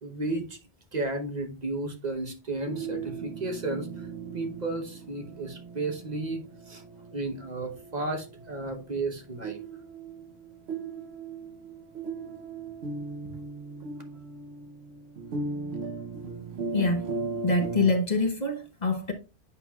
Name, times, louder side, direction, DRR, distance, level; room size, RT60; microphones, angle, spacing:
voice 1, 0.0-0.6 0.9-4.1 4.3-6.8 7.1-9.6 13.2-13.3, right 2 dB, 40° right, 1.0 m, -33 dB
sound 1, 2.7-17.9, right 4 dB, 70° right, 1.0 m, -38 dB
voice 2, 16.7-17.1 17.4-19.1, left 3 dB, 45° left, 0.9 m, -25 dB
8.3 x 5.7 x 2.3 m
omnidirectional pair, 1.1 m